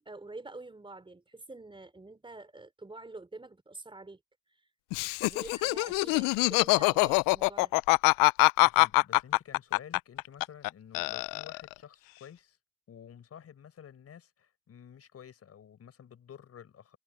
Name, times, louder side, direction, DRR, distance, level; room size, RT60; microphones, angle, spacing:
voice 1, 0.0-4.2 4.6-4.7 5.2-7.7, right 2 dB, 15° right, 4.4 m, -47 dB
Laughter, 4.9-10.7 10.9-11.7, left 25 dB, 60° left, 0.5 m, -24 dB
voice 2, 8.6-12.6 12.9-17.0, left 8 dB, 40° left, 5.8 m, -51 dB
supercardioid pair, 95°, 39 cm